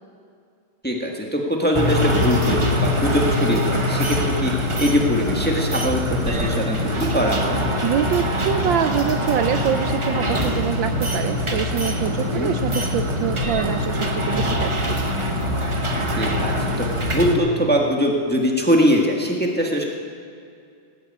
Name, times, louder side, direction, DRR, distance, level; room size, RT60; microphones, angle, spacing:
voice 1, 0.8-7.6 12.3-12.5 16.2-16.9 17.1-19.8, equal, 5° left, 0 dB, 1.4 m, -22 dB
sound 1, 1.7-17.3, left 1 dB, 25° right, 0.7 m, -23 dB
voice 2, 7.8-15.1, right 9 dB, 75° right, 8 dB, 1.2 m, -25 dB
18.0 x 9.1 x 8.7 m, 2.4 s
omnidirectional pair, 2.3 m